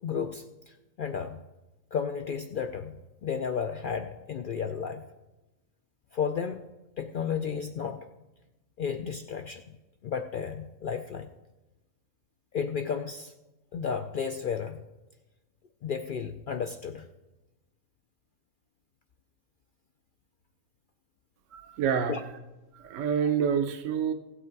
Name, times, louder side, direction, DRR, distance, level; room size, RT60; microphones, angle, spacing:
voice 1, 0.0-1.4 1.9-2.9 3.2-5.0 6.1-6.7 7.0-8.1 8.8-9.6 10.0-11.3 12.5-13.3 13.7-14.8 15.8-17.1 21.9-22.2, left 6 dB, 75° left, 7 dB, 0.4 m, -33 dB
voice 2, 21.5-22.3 22.7-24.1, right 7 dB, 70° right, 7 dB, 1.0 m, -28 dB
16.0 x 8.2 x 4.6 m, 1.1 s
omnidirectional pair, 1.5 m